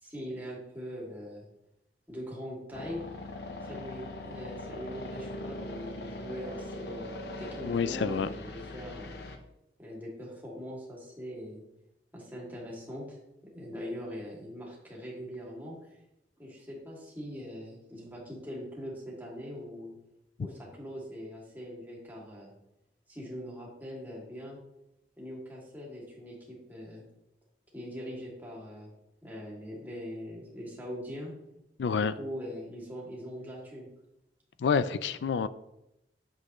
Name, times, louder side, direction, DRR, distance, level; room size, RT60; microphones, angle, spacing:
voice 1, 0.0-1.5 2.1-3.0 3.6-9.2 9.8-11.6 12.1-13.2 13.4-15.8 16.4-19.9 20.4-22.5 23.1-24.6 25.2-27.0 27.7-28.9 29.2-31.3 31.8-33.9, equal, 10° right, -4 dB, 2.4 m, -42 dB
sound 1, 2.7-9.4, left 1 dB, 65° left, 0.8 m, -41 dB
voice 2, 7.6-8.3 31.8-32.1 34.6-35.5, left 6 dB, 90° left, 15 dB, 0.4 m, -28 dB
8.4 x 7.5 x 3.1 m, 0.86 s
head